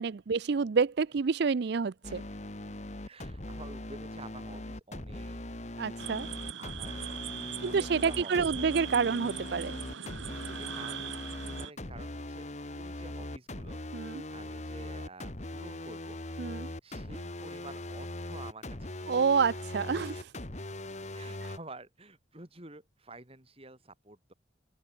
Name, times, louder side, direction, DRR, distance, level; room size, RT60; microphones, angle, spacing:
voice 1, 0.0-2.2 5.8-6.3 7.6-9.7 13.9-14.2 16.4-16.7 19.1-20.3, right 5 dB, 55° right, 0.4 m, -28 dB
sound 1, 2.0-21.6, left 1 dB, 35° left, 1.7 m, -40 dB
voice 2, 3.0-5.4 6.6-7.2 7.6-8.5 10.5-13.8 14.1-16.4 16.8-19.1 19.9-20.2 20.6-20.7 21.1-24.3, right 2 dB, 30° right, 6.0 m, -50 dB
sound 2, 6.0-11.7, right 9 dB, 70° right, 1.5 m, -41 dB
open air
head